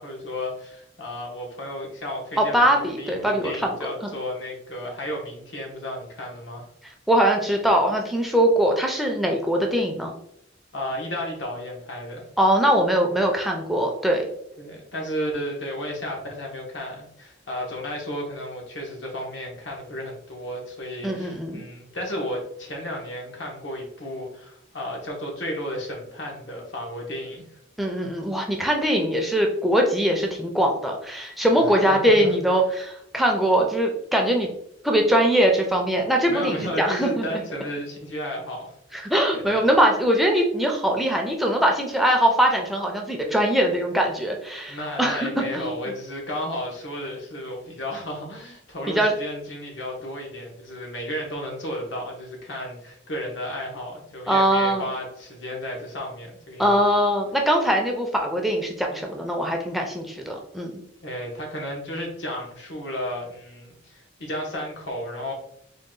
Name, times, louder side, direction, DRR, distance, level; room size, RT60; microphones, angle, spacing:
voice 1, 0.0-6.6 10.7-12.2 14.6-27.5 31.6-32.3 36.3-39.1 39.4-39.6 44.7-56.8 61.0-65.3, equal, 80° left, 0 dB, 1.1 m, -33 dB
voice 2, 2.4-3.8 4.0-4.1 7.1-10.1 12.4-14.3 21.0-21.6 27.8-34.5 34.8-37.2 38.9-45.3 45.5-45.7 48.9-49.1 54.3-54.9 56.6-60.8, equal, ahead, 1 dB, 0.4 m, -22 dB
3.8 x 2.3 x 3.7 m, 0.73 s
head